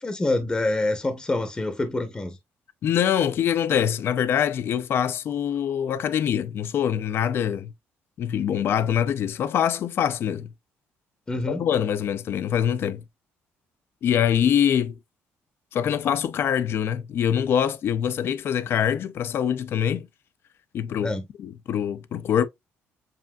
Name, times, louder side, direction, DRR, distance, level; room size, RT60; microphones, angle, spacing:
voice 1, 0.0-2.4 11.3-11.7 21.0-21.2, left 2 dB, 15° left, 0.8 m, -26 dB
voice 2, 2.8-7.7 8.2-10.5 11.5-13.0 14.0-15.0 15.7-20.1 20.7-22.5, left 9 dB, 50° left, 0.4 m, -24 dB
7.5 x 2.5 x 2.3 m
cardioid pair, 130°, 5 cm